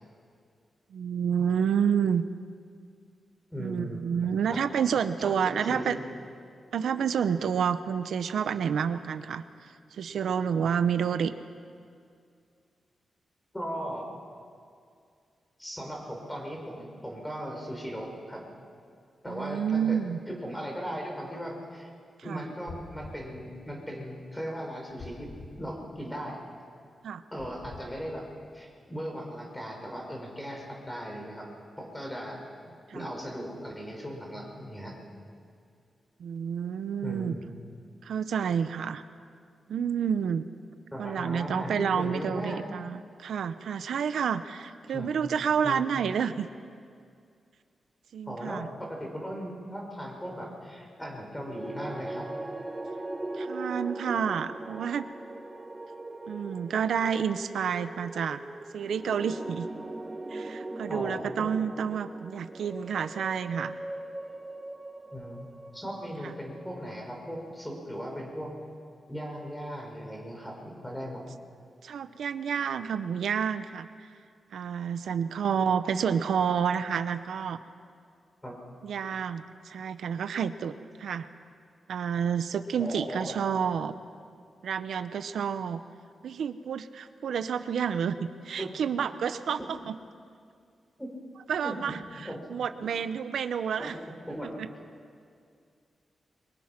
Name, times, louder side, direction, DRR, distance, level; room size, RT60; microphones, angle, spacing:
voice 1, 0.9-2.2 3.6-6.0 6.7-11.3 19.3-20.2 22.3-22.4 27.0-27.2 32.9-33.1 36.2-37.3 38.0-39.0 39.7-40.5 41.0-46.5 48.1-48.7 53.3-55.1 56.3-58.4 58.7-59.7 60.3-63.7 66.2-66.3 71.8-73.9 74.5-77.6 78.8-80.7 81.0-81.3 81.9-83.9 84.6-85.8 86.2-89.9 91.5-93.9, right 7 dB, 85° right, 11 dB, 0.9 m, -29 dB
voice 2, 3.5-4.2 4.5-4.6 5.2-6.0 13.5-14.1 15.6-18.5 19.2-20.0 20.3-21.9 22.2-25.3 25.6-26.4 27.3-28.2 28.5-31.5 31.8-32.4 32.9-34.9 37.0-37.4 40.9-42.6 44.9-45.1 45.6-45.8 48.3-52.2 60.9-61.4 65.1-65.4 65.7-68.5 69.1-71.2 78.4-78.5 82.8-83.4 88.6-88.7 89.6-89.7 91.0-91.1 91.6-91.8 92.2-92.4 93.8-94.0 94.3-94.5, equal, 5° left, 0 dB, 5.5 m, -37 dB
sound 1, 22.7-23.3 25.0-25.6 27.4-27.9, left 3 dB, 75° left, 4.5 m, -45 dB
sound 2, 51.4-67.7, right 2 dB, 20° right, 1.2 m, -40 dB
29.5 x 24.0 x 6.0 m, 2.3 s
wide cardioid pair, 145°, 0 cm